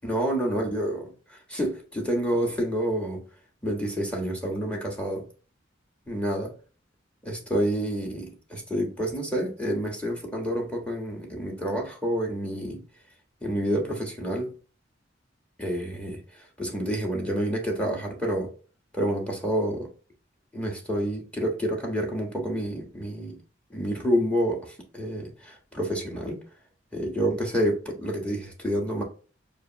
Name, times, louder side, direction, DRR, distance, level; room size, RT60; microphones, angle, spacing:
voice 1, 0.0-3.2 3.6-5.3 6.1-6.5 7.2-12.8 13.4-14.5 15.6-18.5 18.9-19.9 20.5-23.4 23.7-26.4 26.9-29.0, equal, 5° left, 1 dB, 1.3 m, -28 dB
6.2 x 2.6 x 3.0 m, 0.36 s
head